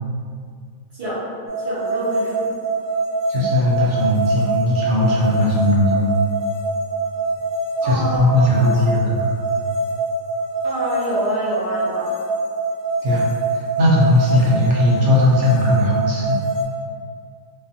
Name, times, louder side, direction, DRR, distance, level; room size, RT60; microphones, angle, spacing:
voice 1, 0.9-2.6 7.8-8.9 10.6-12.1, equal, 45° right, -10 dB, 0.5 m, -27 dB
sound 1, 1.5-16.6, right 3 dB, 20° left, 0.7 m, -24 dB
voice 2, 3.3-6.1 7.8-9.3 13.0-13.3 13.5-16.4, left 1 dB, 65° right, -5 dB, 0.9 m, -18 dB
2.4 x 2.4 x 2.6 m, 2.1 s
omnidirectional pair, 1.4 m